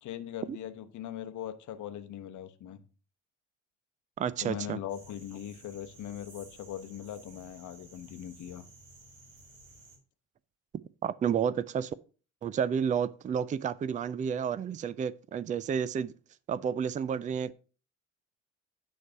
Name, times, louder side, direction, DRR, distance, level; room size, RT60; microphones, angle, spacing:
voice 1, 0.0-2.8 4.4-8.6, left 10 dB, 50° left, 0.9 m, -40 dB
voice 2, 4.2-4.8 11.0-11.9 12.4-16.1 16.5-17.5, right 7 dB, 20° right, 0.4 m, -31 dB
sound 1, 4.9-10.0, right 2 dB, 75° right, 1.9 m, -55 dB
9.3 x 3.3 x 5.4 m
hypercardioid pair, 55°, 38 cm